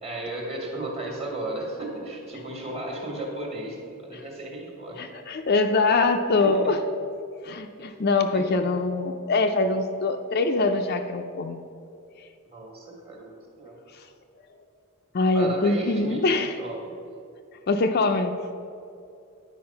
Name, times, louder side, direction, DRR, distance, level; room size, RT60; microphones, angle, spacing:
voice 1, 0.0-5.0 6.4-6.7 7.9-8.0 8.3-8.5 12.4-13.8 15.3-16.2 16.5-16.9, right 2 dB, 25° right, 0 dB, 1.5 m, -35 dB
voice 2, 5.0-6.8 7.4-11.6 13.9-14.0 15.1-16.5 17.7-18.3, left 3 dB, 45° left, 6 dB, 0.4 m, -23 dB
9.5 x 4.7 x 5.6 m, 2.5 s
head